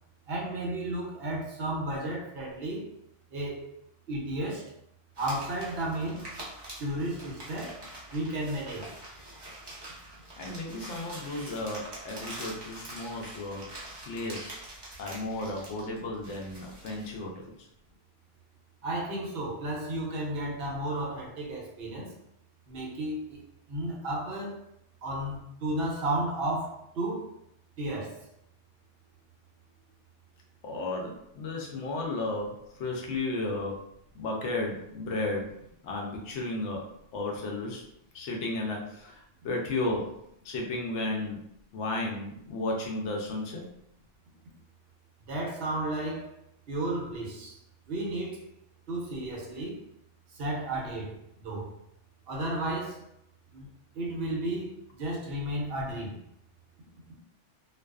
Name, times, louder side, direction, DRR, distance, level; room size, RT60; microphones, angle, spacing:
voice 1, 0.3-2.9 3.3-3.6 4.1-4.7 5.2-6.3 6.8-7.9 8.1-8.9 18.8-22.2 22.7-23.4 23.7-24.6 25.0-27.4 27.8-28.3 45.3-46.3 46.7-47.6 47.9-48.4 48.9-49.8 50.3-51.7 52.3-53.1 53.5-53.7 53.9-56.2, right 1 dB, 65° right, -2 dB, 0.8 m, -33 dB
sound 1, 5.1-17.2, right 1 dB, 30° right, 0.5 m, -45 dB
voice 2, 10.4-13.7 14.0-14.6 15.0-17.5 30.6-33.9 34.1-35.6 35.8-36.9 37.1-37.8 38.1-40.1 40.4-41.4 41.7-43.7, left 2 dB, 75° left, 0 dB, 0.9 m, -33 dB
2.4 x 2.3 x 2.3 m, 0.76 s
omnidirectional pair, 1.2 m